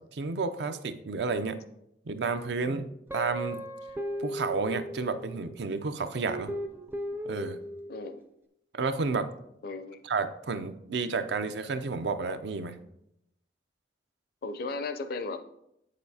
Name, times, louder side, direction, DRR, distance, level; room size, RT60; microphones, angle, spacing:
voice 1, 0.1-1.6 2.1-2.9 3.1-3.6 4.2-6.5 7.3-7.6 8.7-9.3 10.1-12.8, right 4 dB, 70° right, 10 dB, 0.5 m, -31 dB
Guitar, 3.1-5.6 6.3-8.2, equal, 10° right, 0.4 m, -37 dB
voice 2, 7.9-8.2 9.6-10.0 14.4-15.4, left 3 dB, 55° left, 9 dB, 0.5 m, -35 dB
7.8 x 6.6 x 2.7 m, 0.80 s
head